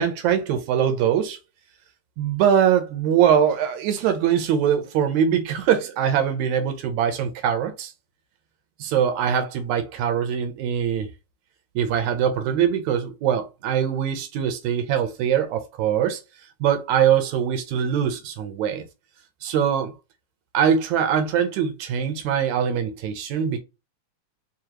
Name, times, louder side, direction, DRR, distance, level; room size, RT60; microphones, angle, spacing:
voice 1, 0.0-1.4 2.2-7.9 8.8-11.1 11.8-16.2 16.6-18.9 19.4-19.9 20.5-23.6, right 8 dB, 80° right, 2.0 m, -22 dB
4.9 x 2.5 x 2.9 m
omnidirectional pair, 3.3 m